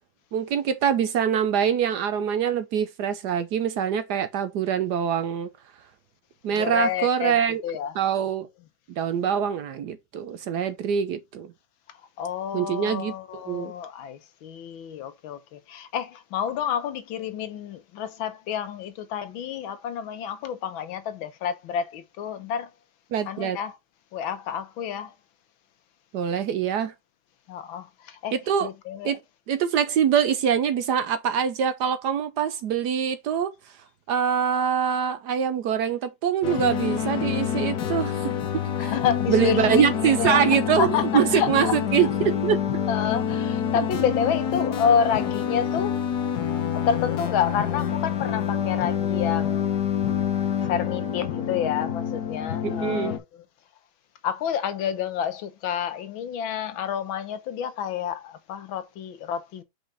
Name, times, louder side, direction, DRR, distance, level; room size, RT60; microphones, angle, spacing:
voice 1, 0.3-5.5 6.4-7.6 8.0-8.5 8.9-11.5 12.5-13.1 13.5-13.7 23.1-23.6 26.1-26.9 28.3-28.7 29.0-29.2 29.5-33.5 34.1-38.9 39.3-42.6 52.6-53.2, right 8 dB, 65° right, 1.1 m, -24 dB
voice 2, 6.5-7.4 7.6-8.0 11.9-22.7 23.3-23.8 24.1-25.1 27.5-29.1 38.8-40.5 40.8-41.7 42.9-46.0 46.7-49.7 50.6-53.4 54.2-59.6, left 8 dB, 80° left, 1.7 m, -29 dB
sound 1, 36.4-53.2, left 8 dB, 60° left, 1.4 m, -27 dB
5.4 x 4.8 x 4.1 m
omnidirectional pair, 2.1 m